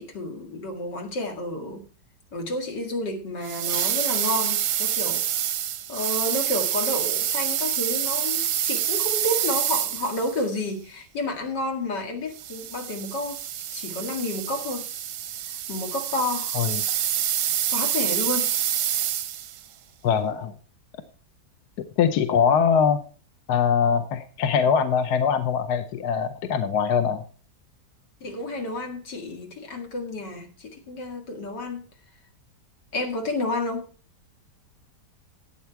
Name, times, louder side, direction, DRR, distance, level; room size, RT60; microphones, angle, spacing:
voice 1, 0.0-1.8 2.3-5.2 5.9-13.4 13.7-14.8 15.7-16.6 17.7-18.7 28.2-31.8 32.9-33.9, left 1 dB, 85° left, 3 dB, 2.7 m, -30 dB
sound 1, 3.4-10.5 12.3-19.6, right 10 dB, 60° right, 0.8 m, -27 dB
voice 2, 20.0-20.5 22.0-23.0 23.5-27.2, left 7 dB, 70° left, 10 dB, 1.3 m, -22 dB
11.5 x 8.6 x 4.6 m, 0.38 s
omnidirectional pair, 1.8 m